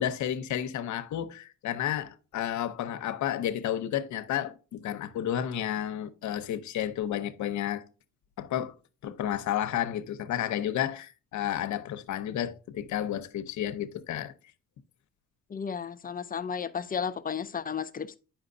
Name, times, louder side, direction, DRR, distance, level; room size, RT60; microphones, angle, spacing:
voice 1, 0.0-7.8 8.4-8.7 9.0-14.3, left 11 dB, 70° left, 0.8 m, -31 dB
voice 2, 15.5-18.2, left 7 dB, 30° left, 0.5 m, -33 dB
8.8 x 5.8 x 2.6 m
cardioid pair, 90°, 30 cm